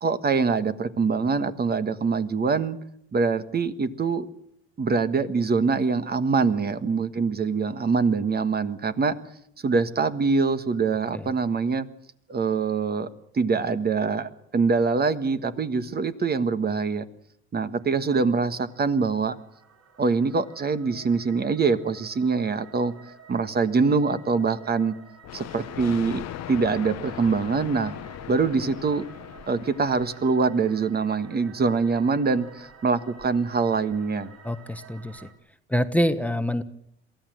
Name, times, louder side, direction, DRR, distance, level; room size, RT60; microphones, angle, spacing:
voice 1, 0.0-2.8 3.1-4.3 4.8-9.1 9.6-11.9 12.3-13.1 13.3-17.0 17.5-19.3 20.0-22.9 23.3-24.9 25.3-27.9 28.3-29.1 29.5-34.3, right 4 dB, 30° right, 11 dB, 1.5 m, -24 dB
sound 1, 17.8-35.3, right 6 dB, 55° right, 5.0 m, -50 dB
Thunder, 25.2-30.6, left 13 dB, 60° left, 0.9 m, -39 dB
voice 2, 34.4-35.3 35.7-36.6, equal, 5° left, 11 dB, 1.2 m, -25 dB
23.0 x 15.0 x 7.7 m, 0.73 s
supercardioid pair, 85°, 30 cm